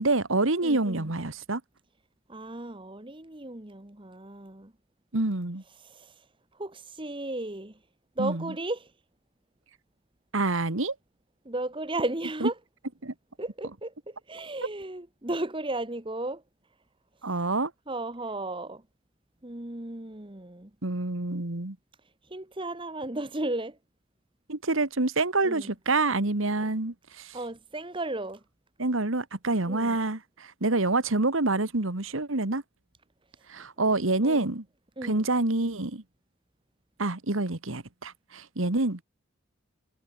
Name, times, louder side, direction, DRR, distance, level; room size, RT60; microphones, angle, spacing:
voice 1, 0.0-1.6 5.1-5.6 8.2-8.5 10.3-10.9 12.4-12.5 13.0-13.1 17.2-17.7 20.8-21.8 24.5-27.4 28.8-32.6 33.5-34.6 35.0-36.0 37.0-39.0, right 2 dB, 75° right, 1.8 m, -27 dB
voice 2, 0.6-1.1 2.3-4.7 5.8-6.1 6.5-7.8 8.2-8.9 11.4-12.5 13.4-16.4 17.9-18.8 19.4-20.7 22.3-23.8 25.4-25.7 27.3-28.4 29.6-30.0 34.2-34.5 35.0-35.3, right 2 dB, 25° right, 1.4 m, -35 dB
head